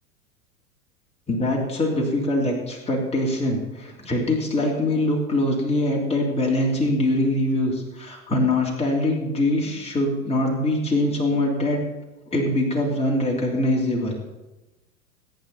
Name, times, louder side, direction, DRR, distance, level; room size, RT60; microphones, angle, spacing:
voice 1, 1.3-11.8 12.3-14.1, left 1 dB, 15° left, -1 dB, 3.1 m, -23 dB
22.5 x 9.0 x 4.2 m, 1.1 s
figure-of-eight pair, 95°, 43 cm